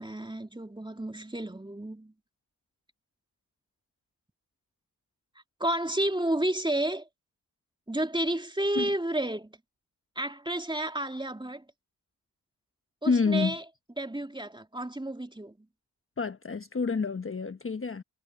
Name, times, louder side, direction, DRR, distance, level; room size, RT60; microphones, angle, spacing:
voice 1, 0.0-2.1 5.6-7.1 7.9-9.5 10.2-11.6 13.0-13.6 14.0-15.7, right 1 dB, 10° right, 2.7 m, -31 dB
voice 2, 13.0-13.6 16.2-18.0, left 4 dB, 30° left, 1.2 m, -28 dB
supercardioid pair, 40°, 40 cm